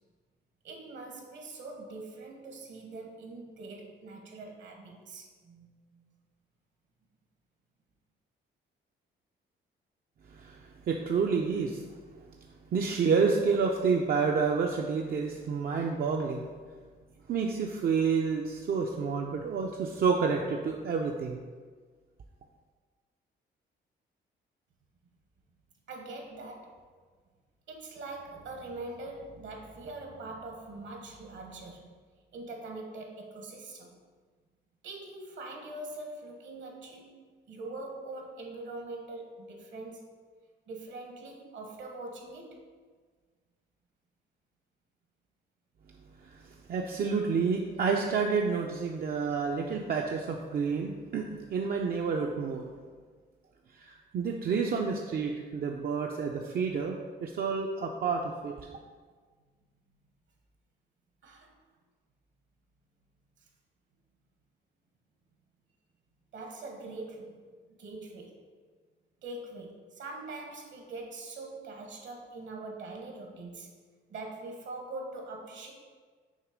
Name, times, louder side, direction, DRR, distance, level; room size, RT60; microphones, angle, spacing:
voice 1, 0.6-6.1 25.9-26.8 27.7-32.0 32.3-34.0 34.8-40.1 40.7-42.7 61.2-61.5 66.3-68.4 69.2-73.7 74.1-75.7, right 2 dB, 65° right, 1 dB, 1.3 m, -43 dB
voice 2, 10.3-12.0 12.7-16.5 17.3-21.4 46.2-52.7 53.7-58.7, right 5 dB, 50° right, 1 dB, 0.5 m, -29 dB
6.4 x 2.9 x 5.0 m, 1.5 s
cardioid pair, 90°, 20 cm